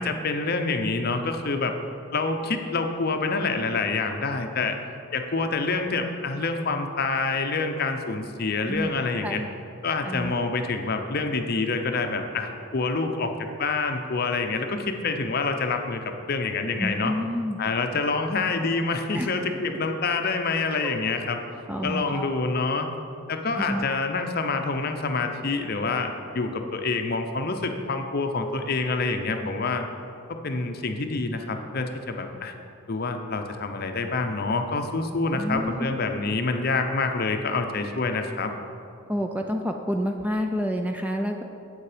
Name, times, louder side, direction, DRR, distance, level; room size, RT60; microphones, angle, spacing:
voice 1, 0.0-1.7 2.1-4.8 5.1-9.4 9.8-17.1 17.6-21.4 21.8-22.9 23.3-29.9 30.4-32.5 32.9-38.5, left 3 dB, 45° left, 6 dB, 0.6 m, -27 dB
voice 2, 16.8-17.6 19.1-19.3 20.8-20.9 21.7-22.3 23.6-23.8 35.3-35.9 39.1-41.4, equal, 5° right, 4 dB, 0.3 m, -29 dB
8.3 x 7.2 x 5.0 m, 2.6 s
head